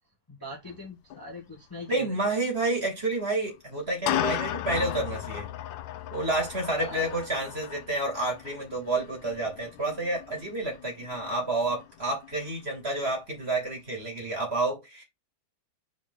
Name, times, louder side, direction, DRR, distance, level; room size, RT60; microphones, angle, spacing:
voice 1, 0.3-2.1 6.7-7.1, left 2 dB, 10° left, 1.7 m, -41 dB
sound 1, 0.7-0.8 1.1-1.2 2.6-2.7 3.7-12.8, left 12 dB, 75° left, 1.3 m, -36 dB
voice 2, 1.9-5.5 6.1-15.0, right 2 dB, 30° right, 2.7 m, -29 dB
5.8 x 4.5 x 4.0 m
omnidirectional pair, 2.1 m